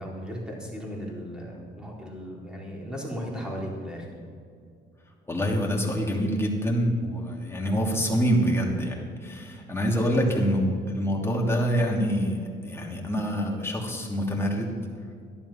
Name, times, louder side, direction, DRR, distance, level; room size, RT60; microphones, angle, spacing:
voice 1, 0.0-4.1, equal, 5° right, -3 dB, 4.1 m, -36 dB
voice 2, 5.3-14.7, equal, 10° left, -1 dB, 2.8 m, -26 dB
12.0 x 11.0 x 5.8 m, 2.3 s
cardioid pair, 90°, 20 cm